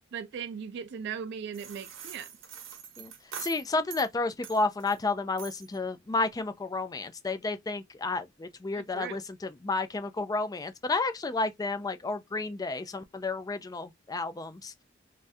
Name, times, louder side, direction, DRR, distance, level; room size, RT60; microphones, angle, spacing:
voice 1, 0.1-2.3 8.7-9.2, right 7 dB, 60° right, 0.3 m, -38 dB
sound 1, 1.5-4.1 4.4-5.0 5.4-5.8, right 8 dB, 80° right, 0.9 m, -44 dB
voice 2, 3.4-14.8, left 3 dB, 20° left, 0.4 m, -31 dB
3.3 x 2.3 x 2.6 m
head